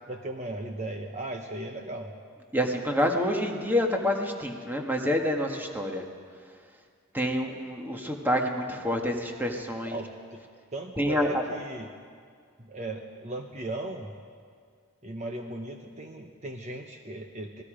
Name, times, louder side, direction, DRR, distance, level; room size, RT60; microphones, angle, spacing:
voice 1, 0.1-2.1 9.8-10.4 10.7-11.9 12.6-14.1 15.0-17.6, right 2 dB, 30° right, 3 dB, 1.0 m, -37 dB
voice 2, 2.5-6.0 7.1-10.0 11.0-11.4, equal, 10° right, 2 dB, 1.6 m, -27 dB
27.0 x 19.0 x 5.1 m, 2.1 s
head